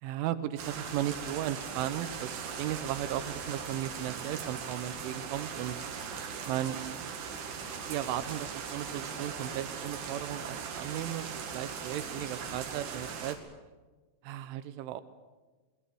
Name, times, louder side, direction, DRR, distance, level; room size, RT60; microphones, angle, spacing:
voice 1, 0.0-5.8 6.5-6.8 7.7-13.4 14.2-15.0, right 12 dB, 85° right, 12 dB, 3.3 m, -36 dB
sound 1, 0.6-13.4, right 6 dB, 65° right, 4.2 m, -39 dB
27.5 x 21.0 x 7.0 m, 1.3 s
omnidirectional pair, 5.5 m